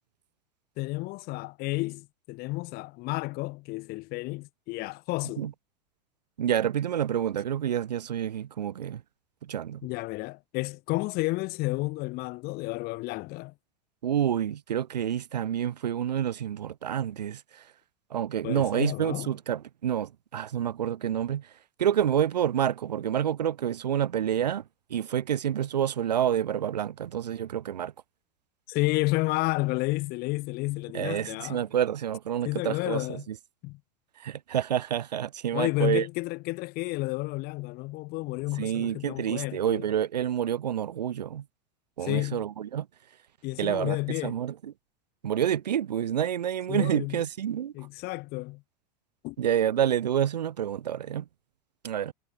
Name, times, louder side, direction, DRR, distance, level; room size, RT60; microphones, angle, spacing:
voice 1, 0.8-5.5 9.8-13.5 18.4-19.3 28.7-31.6 32.4-33.3 33.6-33.8 35.5-39.8 42.0-42.4 43.4-44.4 46.7-47.2 47.7-48.6 49.2-49.4, left 22 dB, 50° left, 1.0 m, -31 dB
voice 2, 6.4-9.0 9.4-9.9 14.0-17.6 18.1-21.5 21.8-24.6 24.9-27.9 30.9-33.4 34.2-36.1 38.6-41.4 42.0-42.9 43.6-44.7 45.2-47.7 49.4-51.3 51.8-52.1, right 10 dB, 90° right, 1.7 m, -28 dB
hypercardioid pair, 100°, 20 cm